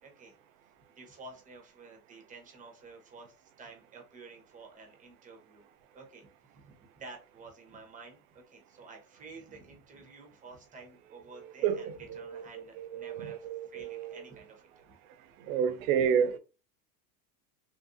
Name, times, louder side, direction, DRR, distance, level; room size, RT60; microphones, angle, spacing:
voice 1, 0.0-0.3 0.9-5.7 5.9-15.0 15.8-15.9, right 3 dB, 15° right, 0.9 m, -51 dB
voice 2, 11.4-14.2 15.4-16.4, right 8 dB, 60° right, 0.6 m, -31 dB
3.1 x 2.5 x 2.6 m
supercardioid pair, 130°, 46 cm